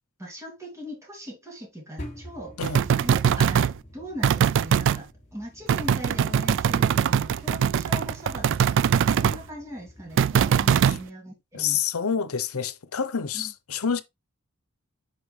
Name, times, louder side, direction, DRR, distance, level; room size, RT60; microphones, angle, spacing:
voice 1, 0.2-2.6 2.9-8.8 9.1-11.8 13.3-13.5, equal, 15° right, 2.7 m, -40 dB
sound 1, 2.0-10.8, left 1 dB, 35° left, 4.7 m, -47 dB
sound 2, 2.6-3.8 4.2-5.0 5.7-9.4 10.2-11.0, right 8 dB, 60° right, 0.3 m, -22 dB
voice 2, 11.5-14.0, left 7 dB, 80° left, 0.8 m, -28 dB
9.9 x 4.7 x 3.3 m
head